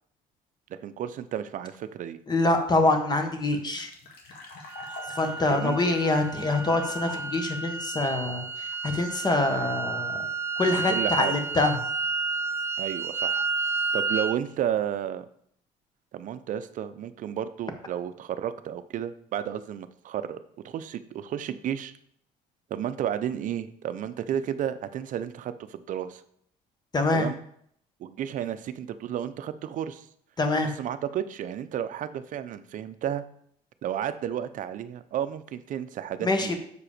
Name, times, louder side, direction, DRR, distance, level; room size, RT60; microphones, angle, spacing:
voice 1, 0.8-2.2 5.5-5.8 10.9-11.3 12.8-13.4 13.9-15.2 16.1-20.4 20.6-21.9 22.7-26.2 27.1-27.4 28.0-30.1 30.8-33.2 33.8-36.5, right 10 dB, 55° right, 12 dB, 0.6 m, -32 dB
voice 2, 2.3-3.9 5.1-8.4 8.8-10.3 10.6-11.8 26.9-27.3 30.4-30.7 36.2-36.6, left 2 dB, 25° left, 6 dB, 1.3 m, -25 dB
sound 1, 2.6-2.7 2.9-3.0 3.2-7.4, left 3 dB, 70° left, 1.9 m, -45 dB
sound 2, 4.7-14.4, right 4 dB, 15° right, 0.4 m, -31 dB
6.8 x 4.9 x 5.0 m, 0.67 s
cardioid pair, 105°, 16 cm